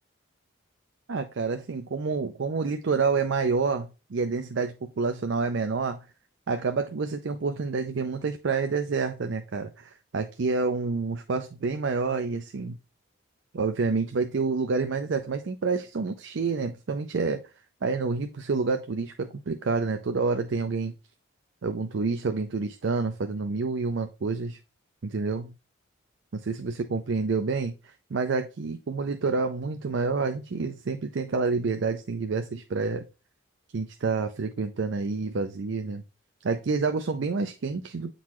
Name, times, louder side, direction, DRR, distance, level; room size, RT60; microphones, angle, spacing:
voice 1, 1.1-6.0 6.5-12.8 13.5-17.4 17.8-20.9 21.6-24.6 25.0-25.5 26.3-33.1 33.7-36.0 36.4-38.1, right 4 dB, 60° right, 0.5 m, -28 dB
8.4 x 3.8 x 3.0 m
head